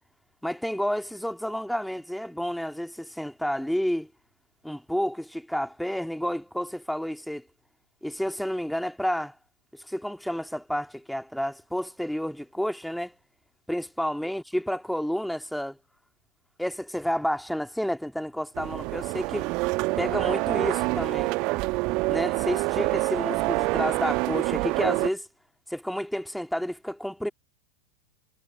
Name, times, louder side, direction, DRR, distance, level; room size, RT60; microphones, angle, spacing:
voice 1, 0.4-4.1 4.6-7.4 8.0-9.3 9.9-13.1 13.7-15.8 16.6-19.5 20.0-21.3 22.1-25.3 25.7-27.3, equal, ahead, 2.8 m, -30 dB
sound 1, 18.6-25.1, right 25 dB, 40° right, 1.1 m, -26 dB
figure-of-eight pair, 90°, 0 cm